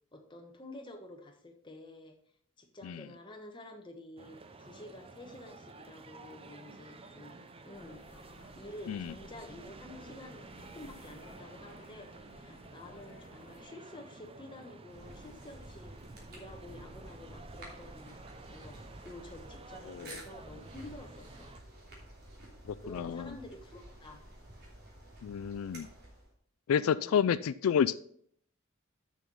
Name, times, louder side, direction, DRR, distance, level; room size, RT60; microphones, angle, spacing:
voice 1, 0.1-2.1 2.6-8.0 8.5-16.0 16.3-18.2 18.5-21.5 22.8-24.2 26.8-27.3, left 1 dB, 25° left, 3 dB, 1.2 m, -50 dB
sound 1, 4.2-21.6, right 3 dB, 25° right, 0.6 m, -52 dB
sound 2, 7.7-13.6, left 2 dB, 65° left, 1.8 m, -56 dB
sound 3, 14.9-26.3, right 1 dB, 50° right, 3.0 m, -51 dB
voice 2, 22.7-23.3 25.2-25.9 26.7-27.9, left 7 dB, 90° left, 15 dB, 0.3 m, -30 dB
6.7 x 6.5 x 5.4 m, 0.63 s
head